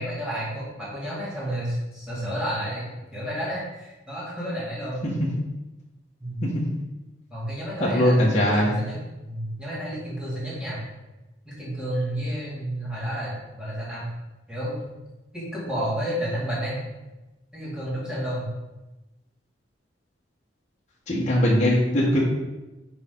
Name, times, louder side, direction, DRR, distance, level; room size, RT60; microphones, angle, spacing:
voice 1, 0.0-5.0 6.2-6.4 7.3-9.0 9.2-10.8 11.5-14.0 14.5-14.9 15.3-16.8 17.5-18.5, equal, 5° right, -8 dB, 2.3 m, -31 dB
voice 2, 7.8-8.8 21.1-22.2, equal, 35° left, -6 dB, 1.4 m, -20 dB
6.6 x 5.0 x 3.9 m, 1.0 s
head